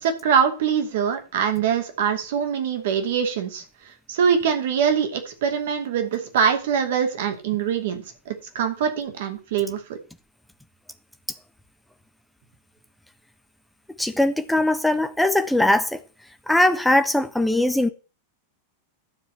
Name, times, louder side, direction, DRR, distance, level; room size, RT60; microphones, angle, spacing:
voice 1, 0.0-3.6 4.1-9.8, right 7 dB, 55° right, 2.6 m, -23 dB
voice 2, 14.0-15.9 16.5-17.9, left 1 dB, 5° left, 1.3 m, -20 dB
12.5 x 4.9 x 7.8 m
figure-of-eight pair, 90°, 0 cm